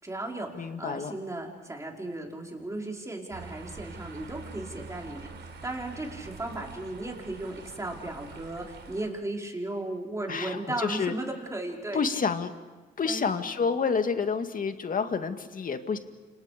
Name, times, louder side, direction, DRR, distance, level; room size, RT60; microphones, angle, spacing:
voice 1, 0.0-5.3 5.6-12.2 13.0-13.3, right 2 dB, 15° right, 0 dB, 5.1 m, -36 dB
voice 2, 0.6-1.1 10.3-11.1 11.9-12.5 13.0-16.0, left 5 dB, 45° left, 7 dB, 2.1 m, -29 dB
sound 1, 3.3-9.1, right 4 dB, 65° right, 4.1 m, -45 dB
30.0 x 27.0 x 5.2 m, 1.3 s
cardioid pair, 90°, 20 cm